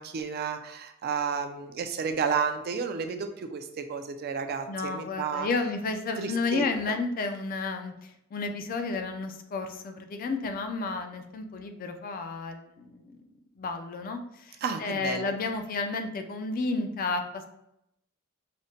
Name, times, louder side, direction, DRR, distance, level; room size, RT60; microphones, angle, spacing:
voice 1, 0.0-5.5 6.2-6.6 14.6-15.3, right 6 dB, 45° right, 7 dB, 0.3 m, -31 dB
voice 2, 4.7-13.2 13.6-17.5, left 3 dB, 40° left, 6 dB, 0.4 m, -32 dB
4.9 x 2.1 x 2.7 m, 0.81 s
head